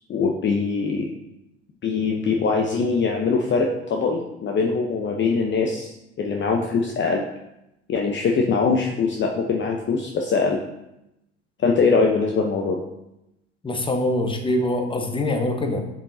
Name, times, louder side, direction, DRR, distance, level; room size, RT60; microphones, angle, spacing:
voice 1, 0.1-1.1 1.8-5.9 6.2-7.2 7.9-10.6 11.6-12.8, left 4 dB, 30° left, 1 dB, 0.9 m, -22 dB
voice 2, 13.6-15.8, left 1 dB, 15° left, 5 dB, 1.2 m, -24 dB
7.5 x 7.0 x 2.8 m, 0.88 s
figure-of-eight pair, 70°, 37 cm